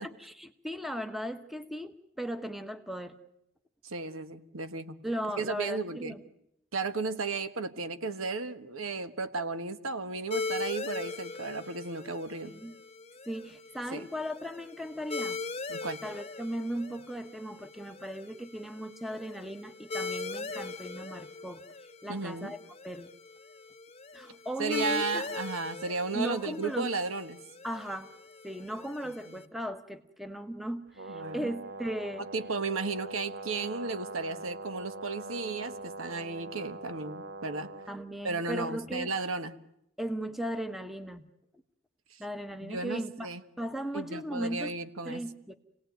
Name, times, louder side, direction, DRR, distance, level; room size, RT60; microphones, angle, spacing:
voice 1, 0.0-3.2 5.0-6.2 12.4-12.8 13.3-15.4 16.0-21.6 22.0-23.1 24.1-25.2 26.1-26.9 27.6-28.1 28.4-32.2 37.9-39.1 40.0-41.2 42.2-43.3 43.6-44.7 45.0-45.5, equal, ahead, 9 dB, 1.0 m, -37 dB
voice 2, 3.8-5.0 5.4-6.1 6.7-12.5 13.9-14.1 15.7-16.0 22.1-22.5 24.6-27.4 29.0-29.4 31.1-31.5 32.2-37.7 38.2-39.5 42.1-42.2 42.6-43.4 43.9-45.2, right 3 dB, 75° right, 10 dB, 1.4 m, -34 dB
sound 1, 10.3-29.5, left 3 dB, 30° left, 1.1 m, -40 dB
Brass instrument, 31.0-38.0, right 2 dB, 55° right, 1.2 m, -42 dB
27.5 x 18.0 x 9.3 m, 0.82 s
head